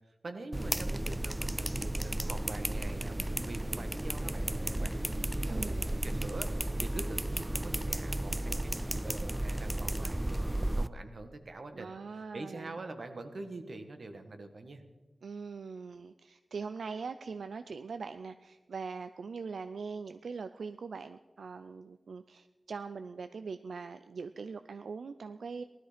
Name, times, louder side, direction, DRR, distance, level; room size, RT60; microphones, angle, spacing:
voice 1, 0.1-11.9 12.3-14.8, right 2 dB, 60° right, 7 dB, 1.4 m, -45 dB
sound 1, 0.5-10.9, right 1 dB, 15° right, 0.4 m, -33 dB
voice 2, 5.4-6.0 11.7-12.8 15.2-25.6, right 5 dB, 90° right, 11 dB, 0.4 m, -42 dB
16.5 x 12.5 x 5.1 m, 1.2 s
wide cardioid pair, 80°, 0 cm